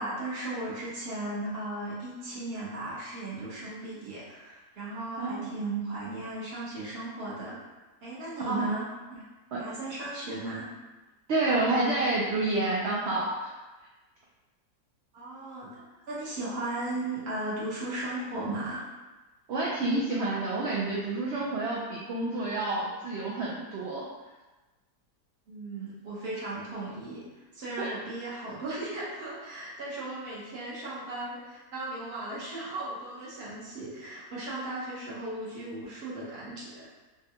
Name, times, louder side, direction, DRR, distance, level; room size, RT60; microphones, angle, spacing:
voice 1, 0.0-7.7 8.0-9.2 9.6-10.7 15.1-15.7 16.1-18.8 25.5-37.0, right 2 dB, 45° right, -7 dB, 1.0 m, -36 dB
voice 2, 5.2-5.5 8.5-8.8 9.5-9.6 11.3-13.5 19.5-24.0 27.8-27.9, right 2 dB, 80° right, -5 dB, 0.6 m, -29 dB
3.5 x 2.2 x 2.7 m, 1.1 s
omnidirectional pair, 1.7 m